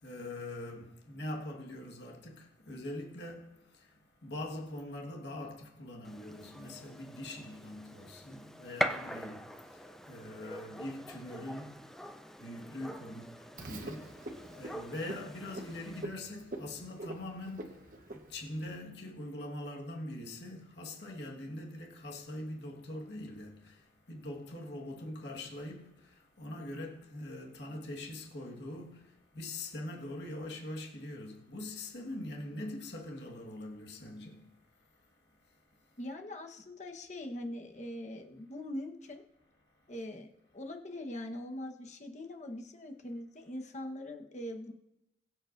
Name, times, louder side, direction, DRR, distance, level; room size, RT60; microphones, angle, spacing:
voice 1, 0.0-36.1 39.1-39.2 39.7-40.0, left 1 dB, 70° left, 1.6 m, -43 dB
Gunshot gunfire, 6.0-16.0, equal, 5° left, 0.4 m, -42 dB
Frog, 13.6-18.8, right 2 dB, 45° right, 1.2 m, -45 dB
voice 2, 36.0-39.2 39.9-44.7, left 1 dB, 40° left, 1.1 m, -42 dB
22.0 x 7.7 x 2.6 m
head